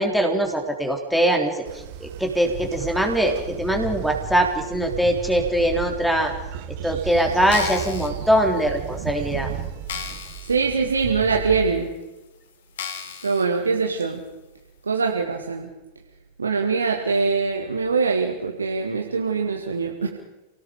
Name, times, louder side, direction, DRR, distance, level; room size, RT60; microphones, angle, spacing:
voice 1, 0.0-1.6 2.0-6.3 6.8-9.5, equal, ahead, 2 dB, 3.5 m, -22 dB
Train, 1.7-11.7, right 9 dB, 50° right, 2.1 m, -34 dB
sound 1, 7.4-8.1 8.8-8.9 9.3-9.4 9.9-10.6 11.0-11.1 11.8-11.9 12.8-13.4 14.0-14.1, left 7 dB, 60° left, 3.1 m, -34 dB
voice 2, 10.5-11.9 13.2-14.2 14.8-15.7 16.4-20.1, right 4 dB, 75° right, 2 dB, 2.1 m, -23 dB
30.0 x 19.0 x 5.1 m, 1.0 s
figure-of-eight pair, 90°, 0 cm